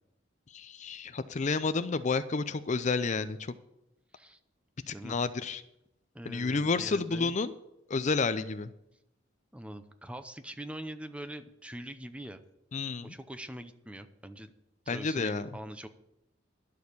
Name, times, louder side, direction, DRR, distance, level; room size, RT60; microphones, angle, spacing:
voice 1, 0.5-3.5 4.9-5.6 6.3-7.5 7.9-8.7 12.7-13.1 14.9-15.5, left 4 dB, 35° left, 12 dB, 0.5 m, -30 dB
voice 2, 6.1-7.3 9.5-12.4 13.0-14.5 14.9-15.9, right 1 dB, 5° right, 10 dB, 0.6 m, -43 dB
12.0 x 6.4 x 8.3 m, 0.84 s
head